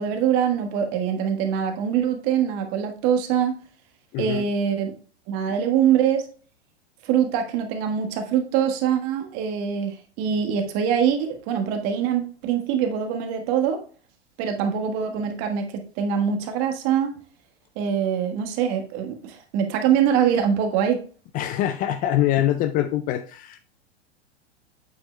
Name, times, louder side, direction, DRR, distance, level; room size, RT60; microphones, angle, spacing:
voice 1, 0.0-3.6 4.2-4.9 5.3-6.3 7.0-13.8 14.4-17.2 17.8-21.0, right 8 dB, 45° right, 5 dB, 1.4 m, -23 dB
voice 2, 4.1-4.4 21.3-23.6, left 12 dB, 25° left, 10 dB, 0.4 m, -24 dB
8.2 x 7.7 x 2.2 m, 0.40 s
hypercardioid pair, 100°, 33 cm